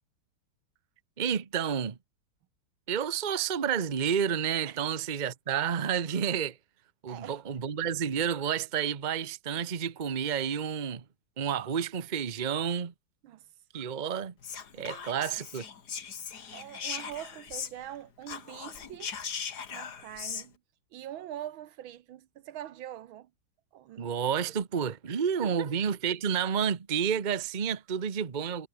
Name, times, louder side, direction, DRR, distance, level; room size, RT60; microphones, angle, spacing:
voice 1, 1.2-2.0 2.9-6.6 7.0-11.0 11.4-12.9 13.7-14.3 14.7-15.6 24.0-28.7, right 7 dB, 30° right, 0.8 m, -30 dB
voice 2, 7.1-7.4 13.2-13.5 14.9-15.4 16.5-19.1 19.7-20.6 20.9-23.3 23.7-24.1 25.1-25.7, right 12 dB, 75° right, 1.6 m, -43 dB
Whispering, 14.4-18.0 18.2-20.5, left 7 dB, 50° left, 2.2 m, -39 dB
omnidirectional pair, 2.3 m